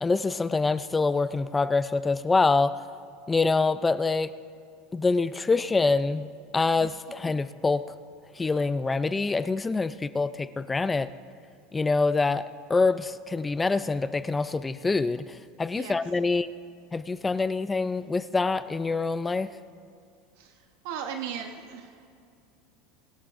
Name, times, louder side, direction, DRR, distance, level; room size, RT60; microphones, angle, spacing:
voice 1, 0.0-2.8 3.3-4.3 4.9-6.3 6.5-7.8 8.4-11.1 11.7-16.5 16.9-19.5, left 3 dB, 10° left, 14 dB, 0.3 m, -25 dB
voice 2, 20.4-22.0, right 8 dB, 75° right, 5 dB, 0.9 m, -37 dB
23.0 x 11.5 x 2.5 m, 2.4 s
supercardioid pair, 140°, 0 cm